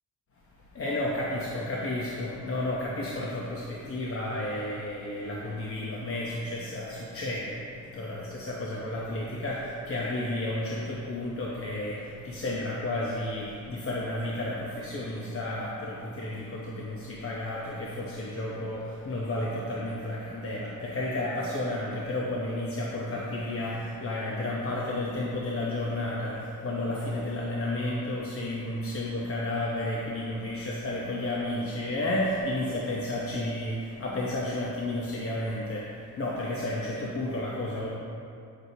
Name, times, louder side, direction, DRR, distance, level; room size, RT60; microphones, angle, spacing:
voice 1, 0.7-37.9, left 1 dB, 35° left, -4 dB, 0.8 m, -32 dB
9.6 x 6.1 x 2.7 m, 2.5 s
cardioid pair, 125°, 38 cm